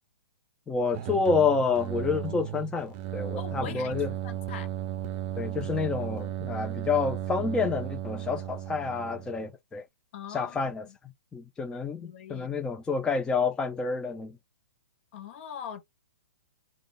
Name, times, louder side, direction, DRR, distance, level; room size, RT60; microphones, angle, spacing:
voice 1, 0.7-4.1 5.4-9.8 10.3-10.8 11.3-14.4, left 5 dB, 10° left, 0.4 m, -28 dB
sound 1, 0.9-9.5, right 12 dB, 40° right, 0.5 m, -35 dB
voice 2, 3.4-4.0 4.2-4.7 10.1-11.0 12.0-12.5 15.1-15.8, left 8 dB, 45° left, 0.8 m, -41 dB
3.7 x 2.2 x 3.6 m
hypercardioid pair, 125°, 9 cm